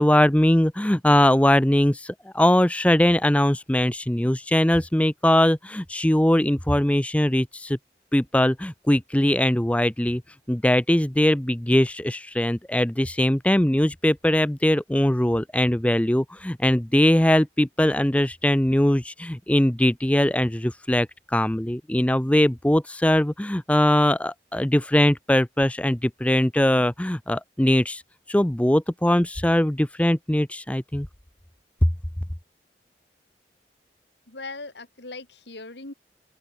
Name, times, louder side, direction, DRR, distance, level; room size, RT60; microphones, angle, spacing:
voice 1, 0.0-7.8 8.1-10.2 10.5-28.0 28.3-31.1, left 1 dB, 10° left, 0.6 m, -21 dB
voice 2, 34.3-35.9, left 3 dB, 85° left, 3.3 m, -39 dB
open air
head